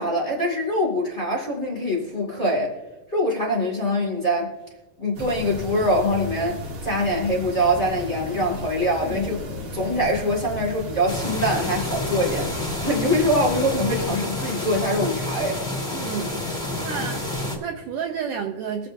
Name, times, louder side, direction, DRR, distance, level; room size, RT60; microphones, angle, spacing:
voice 1, 0.0-2.8 3.1-4.5 5.0-9.5 9.7-12.5 12.8-15.6, equal, 30° left, -4 dB, 1.5 m, -24 dB
sound 1, 5.1-14.1, equal, 60° right, 1.5 m, -35 dB
sound 2, 8.0-11.2 11.6-11.9, left 8 dB, 80° left, 2.0 m, -40 dB
sound 3, 11.1-17.6, left 2 dB, ahead, 1.6 m, -29 dB
voice 2, 15.9-16.4 16.8-18.9, right 7 dB, 80° right, 3 dB, 1.9 m, -31 dB
23.0 x 7.8 x 2.6 m, 1.1 s
omnidirectional pair, 4.4 m